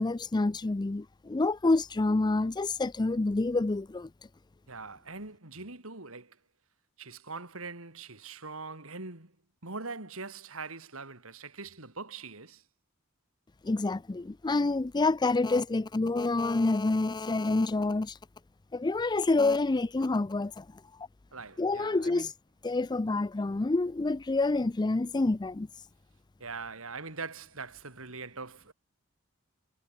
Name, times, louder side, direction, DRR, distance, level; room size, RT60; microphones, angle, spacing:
voice 1, 0.0-4.1 13.6-18.2 18.7-20.7 21.6-22.3 22.6-25.7, left 2 dB, 20° left, 0.4 m, -27 dB
voice 2, 4.7-6.4 7.0-9.3 9.6-12.6 21.3-22.3 26.4-28.7, right 4 dB, 75° right, 3.7 m, -42 dB
head